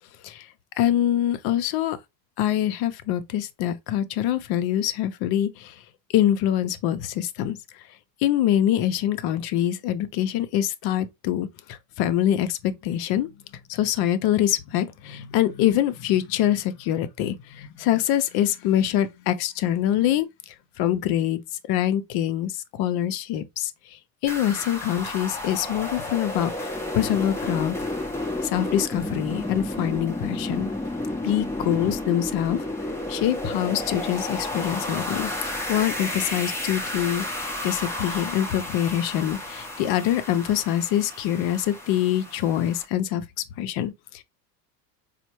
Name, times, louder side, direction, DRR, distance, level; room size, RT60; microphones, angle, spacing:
voice 1, 0.8-2.0 2.4-5.8 6.1-7.6 8.2-13.3 13.7-20.3 20.8-21.4 21.7-27.8 28.4-30.7 31.2-32.6 33.1-43.2 43.6-44.2, left 11 dB, 50° left, 0.6 m, -25 dB
sound 1, 24.3-42.8, left 1 dB, 5° left, 0.6 m, -32 dB
4.2 x 2.1 x 2.9 m
supercardioid pair, 110°, 49 cm